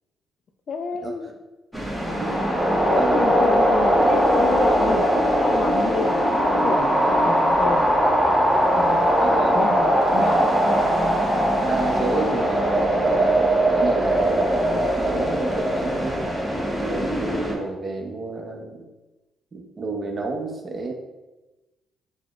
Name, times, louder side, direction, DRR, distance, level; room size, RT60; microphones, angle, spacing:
voice 1, 0.7-1.3 2.9-8.1 8.7-9.1 9.5-10.5, left 5 dB, 50° left, 7 dB, 0.3 m, -30 dB
sound 1, 1.7-17.5, equal, 5° right, 0.8 m, -20 dB
voice 2, 2.2-2.6 3.0-3.6 9.2-9.6 11.6-16.3 16.8-18.8 19.5-20.9, right 2 dB, 40° right, 2 dB, 0.6 m, -30 dB
5.5 x 2.1 x 2.4 m, 1.1 s
cardioid pair, 90°, 0 cm